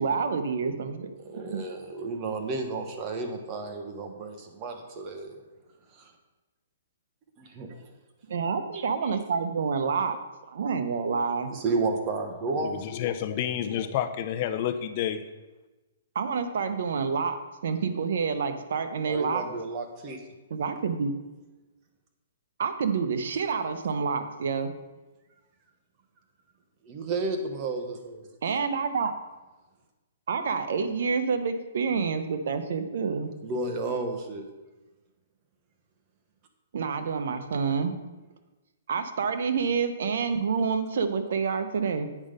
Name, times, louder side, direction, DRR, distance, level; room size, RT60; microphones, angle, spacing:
voice 1, 0.0-1.2 1.4-1.6 8.3-10.2 10.5-11.5 16.1-17.4 17.6-19.4 20.5-21.1 22.6-24.7 28.4-29.1 30.3-33.3 36.7-37.9 38.9-42.1, right 5 dB, 65° right, 8 dB, 0.9 m, -28 dB
voice 2, 1.2-5.4 5.9-6.1 7.4-7.9 8.7-9.2 11.5-12.9 19.0-20.2 26.8-28.3 33.4-34.5, right 3 dB, 30° right, 4 dB, 1.1 m, -32 dB
voice 3, 12.8-15.2, left 10 dB, 40° left, 8 dB, 0.7 m, -29 dB
8.6 x 5.4 x 5.1 m, 1.1 s
hypercardioid pair, 155°, 0 cm